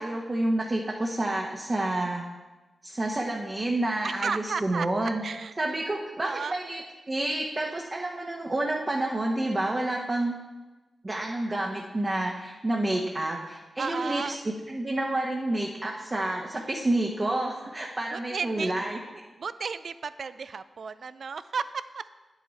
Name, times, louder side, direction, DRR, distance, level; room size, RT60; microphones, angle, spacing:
voice 1, 0.0-2.2 2.8-5.2 5.6-6.8 7.1-10.3 11.0-19.0, right 1 dB, 30° right, -1 dB, 1.1 m, -29 dB
voice 2, 4.0-5.5 6.2-6.6 13.8-14.4 18.1-18.7 19.4-22.1, right 5 dB, 65° right, 14 dB, 0.4 m, -33 dB
9.5 x 8.2 x 4.1 m, 1.2 s
cardioid pair, 70°, 0 cm